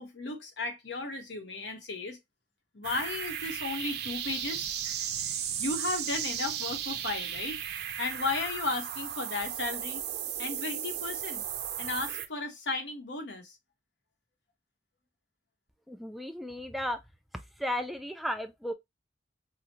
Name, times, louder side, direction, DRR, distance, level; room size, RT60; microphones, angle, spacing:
voice 1, 0.0-2.2 2.7-7.6 8.0-10.0 10.4-11.4 11.8-13.6, left 3 dB, 85° left, 1.0 m, -35 dB
sound 1, 2.8-12.3, right 9 dB, 65° right, 0.5 m, -35 dB
voice 2, 15.9-17.0 17.3-18.7, left 1 dB, ahead, 0.3 m, -35 dB
4.8 x 2.0 x 2.8 m
head